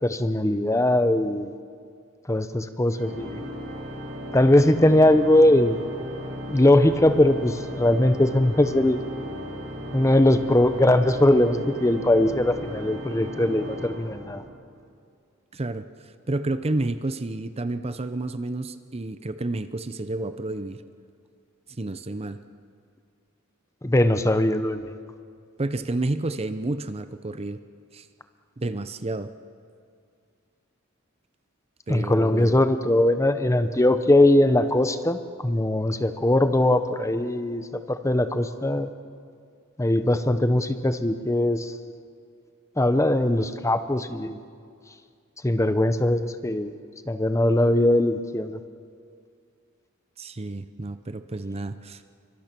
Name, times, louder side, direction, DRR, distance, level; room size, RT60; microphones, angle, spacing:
voice 1, 0.0-1.5 2.3-3.5 4.3-5.8 6.5-9.0 9.9-14.4 23.8-24.9 31.9-38.9 39.8-41.7 42.8-44.4 45.4-46.7 47.1-48.6, left 1 dB, 15° left, 10 dB, 0.8 m, -21 dB
Organ, 2.9-14.7, equal, 60° right, 5.3 m, -36 dB
voice 2, 15.5-20.8 21.7-22.4 25.6-27.6 27.9-28.1 28.6-29.3 31.9-32.6 50.2-52.1, right 2 dB, 30° right, 11 dB, 0.7 m, -30 dB
28.5 x 24.5 x 6.1 m, 2.2 s
head